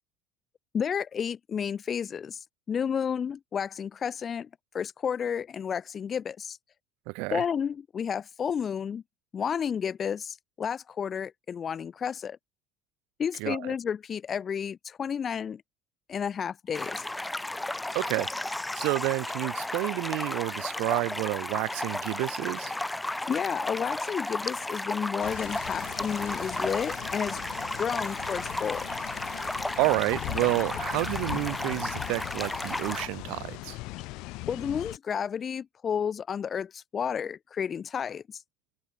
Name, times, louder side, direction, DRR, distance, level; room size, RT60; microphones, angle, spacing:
voice 1, 0.7-2.4 2.7-4.5 4.7-6.6 7.3-9.0 9.3-12.4 13.2-15.6 16.1-17.0 23.3-27.4 27.7-28.9 34.5-38.2, left 7 dB, 35° left, 1.1 m, -31 dB
voice 2, 7.1-7.4 13.4-13.6 17.9-18.3 18.7-22.7 29.8-33.8, right 29 dB, 75° right, 0.6 m, -29 dB
sound 1, 16.7-33.1, left 1 dB, 10° left, 1.4 m, -34 dB
sound 2, 25.2-35.0, left 22 dB, 70° left, 0.9 m, -40 dB
supercardioid pair, 110°, 0 cm